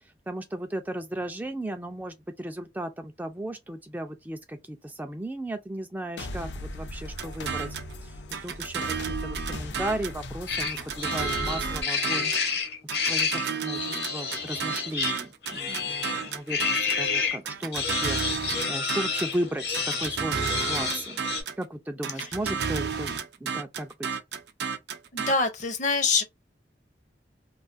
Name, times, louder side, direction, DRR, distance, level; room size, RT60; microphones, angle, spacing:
voice 1, 0.0-7.7 8.0-21.2 21.6-23.1 23.4-23.9, right 1 dB, 10° right, 0.3 m, -35 dB
sound 1, 6.2-11.8, left 1 dB, 90° left, 0.6 m, -38 dB
sound 2, 7.2-7.9 8.3-10.2 10.6-12.5 12.9-17.1 17.5-19.4 19.7-21.6 22.0-25.3, right 6 dB, 70° right, 0.5 m, -32 dB
sound 3, 10.5-17.4 17.7-21.4, left 5 dB, 65° left, 1.0 m, -30 dB
voice 2, 25.1-26.2, left 4 dB, 45° left, 0.6 m, -24 dB
2.4 x 2.3 x 2.4 m
head